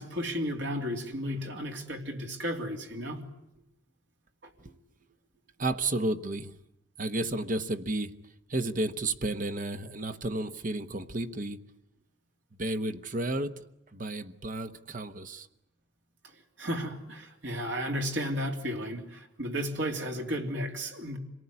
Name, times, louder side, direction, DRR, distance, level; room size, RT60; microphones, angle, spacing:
voice 1, 0.0-3.2 16.6-21.2, equal, 70° right, 3 dB, 3.2 m, -33 dB
voice 2, 5.6-6.6 7.0-8.1 8.5-11.6 12.6-15.5, right 2 dB, 45° right, 10 dB, 1.1 m, -32 dB
25.5 x 19.0 x 9.7 m, 0.88 s
head